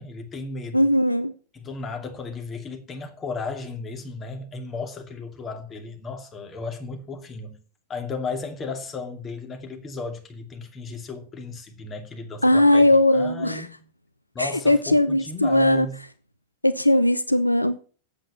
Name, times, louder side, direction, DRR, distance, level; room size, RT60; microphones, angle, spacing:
voice 1, 0.0-0.9 1.5-7.6 7.9-13.8 14.3-16.0, left 4 dB, 25° left, 2.5 m, -35 dB
voice 2, 0.7-1.3 12.4-13.6 14.4-15.9 16.6-17.8, left 1 dB, 85° left, 0.6 m, -19 dB
8.4 x 7.9 x 6.9 m
figure-of-eight pair, 90°, 0 cm